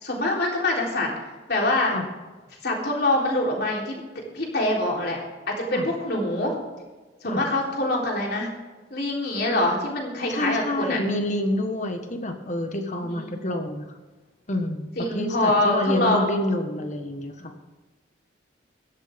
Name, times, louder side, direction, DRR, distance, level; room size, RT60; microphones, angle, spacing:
voice 1, 0.0-1.1 1.5-2.0 2.6-4.0 4.3-5.2 5.5-6.6 7.2-8.5 8.9-11.0 13.1-13.4 15.0-16.3, left 1 dB, 55° left, -1 dB, 3.7 m, -24 dB
voice 2, 10.3-13.9 14.5-14.9 15.1-17.5, left 1 dB, 40° left, 5 dB, 1.5 m, -28 dB
16.0 x 13.0 x 3.6 m, 1.3 s
head